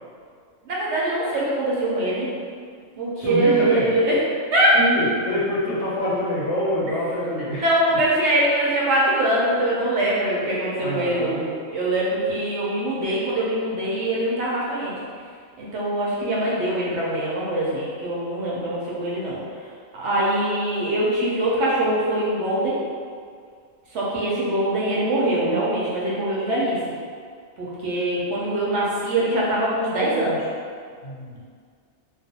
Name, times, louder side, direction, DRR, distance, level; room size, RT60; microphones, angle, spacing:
voice 1, 0.6-2.3 3.0-4.2 4.5-4.7 7.5-14.9 15.6-19.4 19.9-22.8 23.9-26.8 27.6-30.5, right 1 dB, 70° right, -6 dB, 0.8 m, -23 dB
voice 2, 3.2-3.9 4.7-7.6 10.8-11.5 31.0-31.4, left 1 dB, 65° left, -7 dB, 0.8 m, -25 dB
2.4 x 2.1 x 2.7 m, 2.1 s
omnidirectional pair, 1.3 m